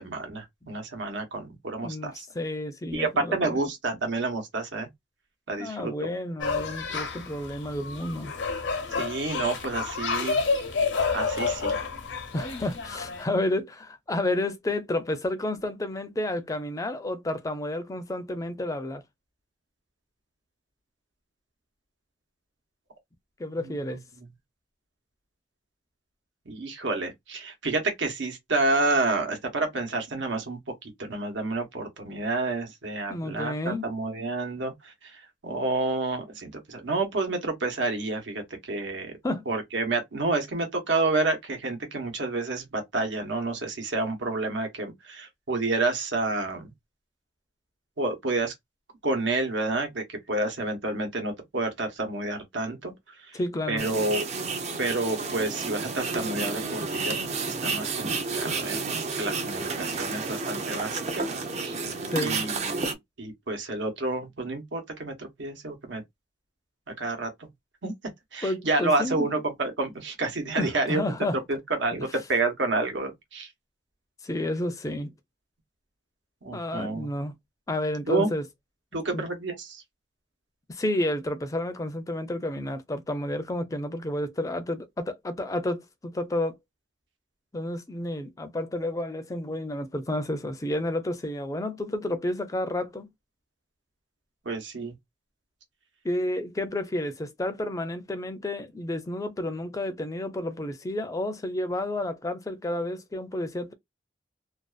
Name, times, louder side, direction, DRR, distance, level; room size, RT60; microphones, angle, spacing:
voice 1, 0.0-2.2 2.9-4.9 5.5-5.9 8.9-10.4 11.1-11.8 23.6-23.7 26.5-34.9 35.4-39.1 39.5-46.7 48.0-48.5 49.0-52.9 53.7-54.3 54.8-58.8 59.2-61.2 61.6-61.7 62.2-66.0 67.0-67.5 67.8-67.9 68.3-71.0 71.5-73.5 76.4-77.1 78.1-78.3 78.9-79.8 94.4-94.9, right 2 dB, 80° right, 1.0 m, -29 dB
voice 2, 1.8-3.7 5.6-8.3 12.3-19.0 23.4-24.0 33.1-33.9 39.2-39.5 53.3-53.9 62.1-62.4 68.4-69.3 70.6-71.4 71.9-72.1 74.2-75.1 76.5-77.3 77.7-78.5 79.1-79.3 80.7-86.6 87.5-93.1 96.0-103.7, left 1 dB, 20° left, 0.4 m, -31 dB
sound 1, 6.4-13.2, left 4 dB, 80° left, 0.7 m, -29 dB
sound 2, 53.8-62.9, right 4 dB, 35° right, 0.5 m, -31 dB
2.5 x 2.3 x 2.3 m
head